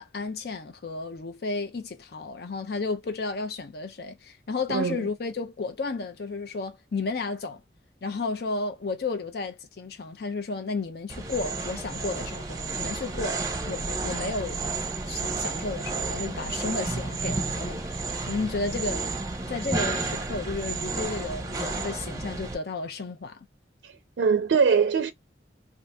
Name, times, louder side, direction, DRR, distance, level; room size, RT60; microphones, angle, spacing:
voice 1, 0.0-7.6 8.0-14.7 15.1-19.1 19.5-23.4, left 3 dB, 60° left, 0.5 m, -33 dB
sound 1, 11.1-22.5, right 3 dB, 20° right, 0.7 m, -31 dB
voice 2, 23.8-25.1, right 6 dB, 80° right, 0.4 m, -23 dB
2.7 x 2.5 x 3.3 m
head